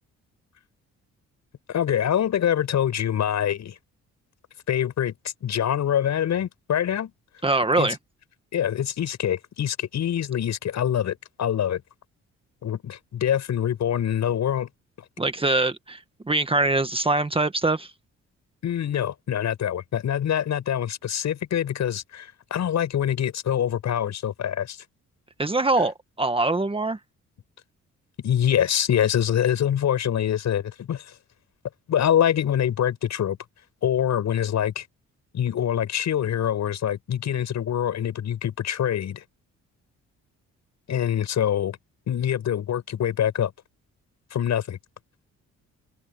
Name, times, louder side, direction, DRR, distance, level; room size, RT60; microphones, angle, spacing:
voice 1, 1.7-3.8 4.7-5.1 5.4-7.1 7.8-7.9 8.5-11.8 12.6-14.7 18.6-24.8 28.2-31.1 31.9-33.4 33.8-34.8 35.3-39.2 40.9-41.8 42.1-43.5 44.3-44.8, left 10 dB, 65° left, 7.8 m, -25 dB
voice 2, 7.4-8.0 15.2-17.9 25.4-27.0, right 2 dB, 20° right, 1.6 m, -23 dB
cardioid pair, 90°, 30 cm